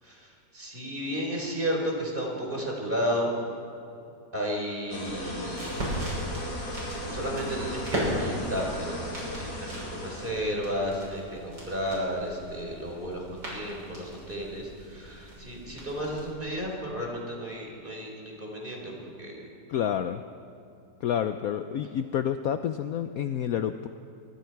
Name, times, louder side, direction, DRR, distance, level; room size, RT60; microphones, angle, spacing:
voice 1, 0.0-3.3 4.3-5.8 7.1-9.0 9.4-19.5, equal, 30° right, -1 dB, 4.4 m, -33 dB
sound 1, 4.9-10.3, equal, 85° left, 4.7 m, -36 dB
sound 2, 5.1-16.3, equal, 80° right, 7.2 m, -38 dB
voice 2, 19.7-20.2 21.0-23.9, left 9 dB, 65° left, 9 dB, 0.9 m, -29 dB
25.0 x 23.5 x 4.7 m, 2.7 s
omnidirectional pair, 1.9 m